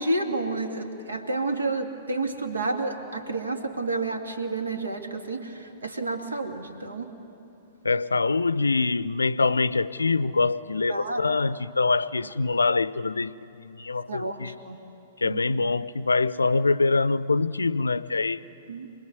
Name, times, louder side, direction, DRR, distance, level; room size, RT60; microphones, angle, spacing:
voice 1, 0.0-7.2 10.9-11.2 14.1-14.8 15.2-15.4 18.7-18.9, right 2 dB, 75° right, 2.1 m, -30 dB
voice 2, 7.8-14.5 15.2-18.4, left 3 dB, 75° left, 0.5 m, -24 dB
26.0 x 20.5 x 9.6 m
figure-of-eight pair, 110°, 0 cm